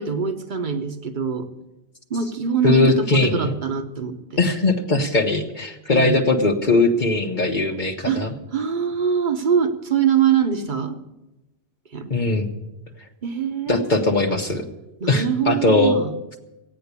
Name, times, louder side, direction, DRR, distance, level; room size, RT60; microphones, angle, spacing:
voice 1, 0.0-1.5 2.1-4.4 5.9-6.2 8.0-8.2 8.5-11.0 11.9-12.1 13.2-13.9 15.0-16.1, right 7 dB, 40° right, 7 dB, 1.2 m, -23 dB
voice 2, 2.6-3.6 4.4-8.3 12.1-12.5 13.7-14.7 15.1-16.0, left 3 dB, 40° left, 2 dB, 1.2 m, -20 dB
15.5 x 9.3 x 8.2 m, 0.96 s
omnidirectional pair, 1.3 m